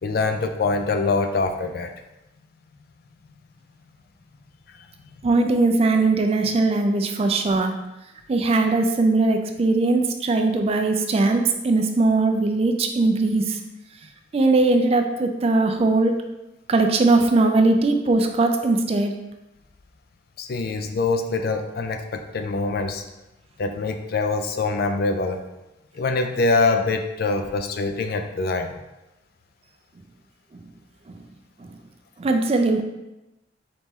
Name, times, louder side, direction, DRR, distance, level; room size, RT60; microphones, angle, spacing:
voice 1, 0.0-1.9 4.7-4.9 7.5-7.6 20.4-23.0 23.6-25.4 25.9-28.8, left 3 dB, 50° left, 6 dB, 0.4 m, -24 dB
voice 2, 5.2-7.7 8.3-13.6 14.3-16.2 16.7-19.1 32.2-32.8, right 3 dB, 30° right, 5 dB, 0.3 m, -20 dB
4.1 x 3.0 x 3.6 m, 0.95 s
head